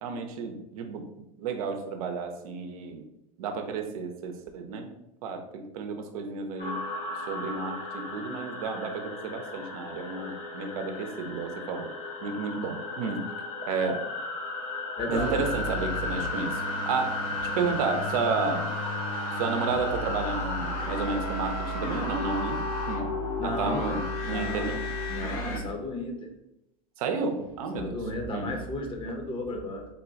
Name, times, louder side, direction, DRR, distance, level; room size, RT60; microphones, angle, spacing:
voice 1, 0.0-3.0 3.4-4.9 5.2-6.8 7.3-11.9 12.2-13.3 13.6-14.0 15.1-18.7 19.3-22.6 22.9-23.1 23.4-24.8 25.2-25.6 27.0-28.0 28.3-28.5, right 4 dB, 70° right, 5 dB, 0.6 m, -32 dB
sound 1, 6.6-25.3, left 3 dB, 50° left, 1.5 m, -37 dB
voice 2, 15.0-15.7 23.4-24.7 25.1-26.3 27.8-29.9, left 2 dB, 25° left, 2 dB, 0.9 m, -34 dB
sound 2, 15.1-25.6, left 1 dB, 75° left, 1.3 m, -33 dB
3.6 x 2.3 x 3.9 m, 0.85 s
hypercardioid pair, 100°, 19 cm